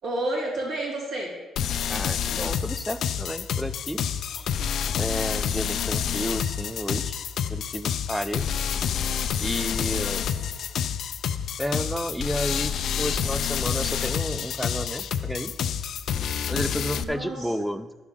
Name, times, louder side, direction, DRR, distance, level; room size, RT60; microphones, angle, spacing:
voice 1, 0.0-1.3 10.2-10.4 17.0-17.7, right 1 dB, 75° right, -4 dB, 3.2 m, -31 dB
sound 1, 1.6-17.0, left 8 dB, 70° left, 0.4 m, -28 dB
voice 2, 1.9-4.0 4.3-4.5 5.0-7.2 7.5-8.6 9.4-10.3 11.6-15.5 16.5-17.9, equal, ahead, 13 dB, 0.4 m, -31 dB
11.0 x 4.9 x 5.3 m, 1.2 s
cardioid pair, 90°, 0 cm